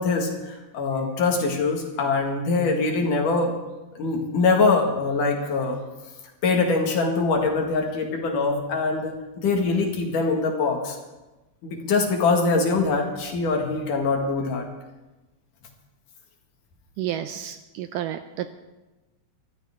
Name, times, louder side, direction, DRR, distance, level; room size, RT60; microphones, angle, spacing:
voice 1, 0.0-3.5 4.0-5.8 6.4-11.0 11.6-14.6, left 3 dB, 60° left, 2 dB, 3.4 m, -23 dB
voice 2, 17.0-18.5, right 11 dB, 80° right, 9 dB, 2.0 m, -31 dB
23.0 x 14.0 x 3.7 m, 1.1 s
omnidirectional pair, 4.2 m